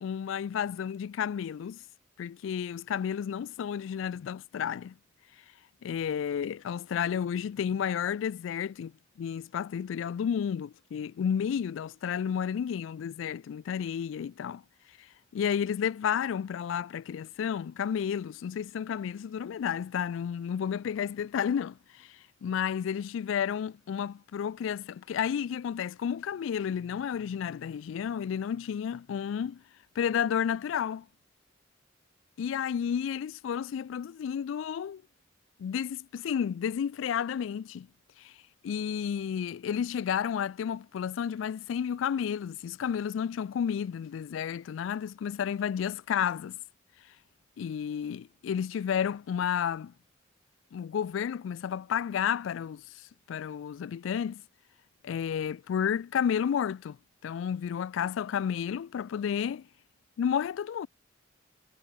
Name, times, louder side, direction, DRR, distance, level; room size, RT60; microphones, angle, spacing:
voice 1, 0.0-1.8 2.2-4.9 5.8-8.9 9.2-14.6 15.3-22.1 22.4-29.6 30.0-31.1 32.4-35.0 35.6-37.9 38.2-38.3 38.6-46.6 47.6-49.9 50.7-52.8 53.3-54.4 55.0-57.0 57.2-59.7 60.2-60.9, left 8 dB, 75° left, 0.3 m, -31 dB
head